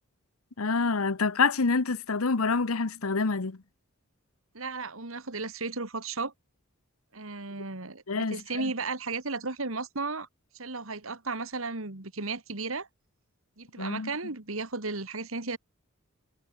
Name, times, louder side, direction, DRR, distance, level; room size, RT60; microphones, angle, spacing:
voice 1, 0.6-3.6 8.1-8.7 13.8-14.1, left 4 dB, 85° left, 1.0 m, -27 dB
voice 2, 4.5-6.3 7.1-10.3 10.5-12.9 13.6-15.6, right 3 dB, 70° right, 2.4 m, -34 dB
head